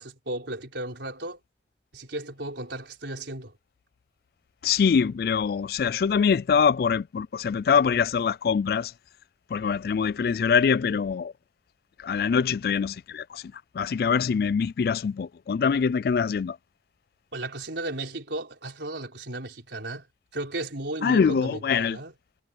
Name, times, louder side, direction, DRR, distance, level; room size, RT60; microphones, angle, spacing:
voice 1, 0.0-1.4 1.9-3.6 17.3-20.1 20.3-22.1, right 2 dB, 85° right, 4.2 m, -35 dB
voice 2, 4.6-8.9 9.5-11.3 12.0-13.4 13.7-16.6 21.0-22.0, left 6 dB, 55° left, 0.3 m, -24 dB
head